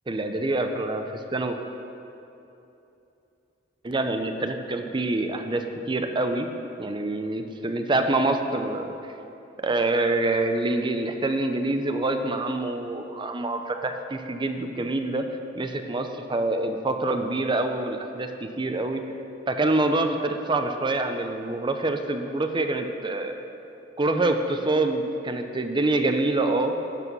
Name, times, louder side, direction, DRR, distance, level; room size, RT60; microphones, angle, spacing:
voice 1, 0.1-1.0 1.3-1.6 3.8-6.5 6.8-8.9 9.6-15.2 15.5-19.0 19.5-23.4 24.0-26.7, right 2 dB, 25° right, 6 dB, 0.5 m, -26 dB
12.0 x 4.2 x 6.0 m, 2.9 s
head